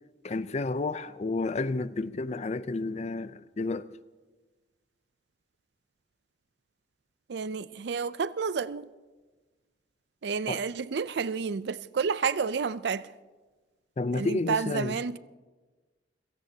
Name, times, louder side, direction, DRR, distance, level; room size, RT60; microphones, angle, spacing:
voice 1, 0.2-3.9 10.5-10.6 14.0-14.9, left 3 dB, 40° left, 0.5 m, -31 dB
voice 2, 7.3-8.9 10.2-13.1 14.1-15.2, right 5 dB, 65° right, 0.4 m, -30 dB
28.0 x 17.0 x 2.8 m
head